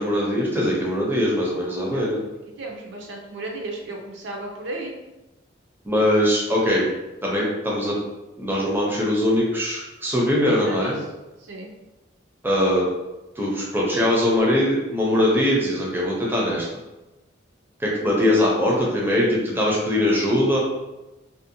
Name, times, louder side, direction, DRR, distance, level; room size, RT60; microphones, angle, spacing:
voice 1, 0.0-2.2 5.8-6.8 7.2-8.0 8.4-11.0 12.4-12.9 13.4-16.7 17.8-20.6, left 1 dB, 10° right, -4 dB, 0.5 m, -21 dB
voice 2, 1.8-2.1 2.6-4.9 10.5-11.0 11.4-11.7, right 2 dB, 65° right, 0 dB, 0.4 m, -34 dB
2.6 x 2.1 x 2.6 m, 1.0 s
head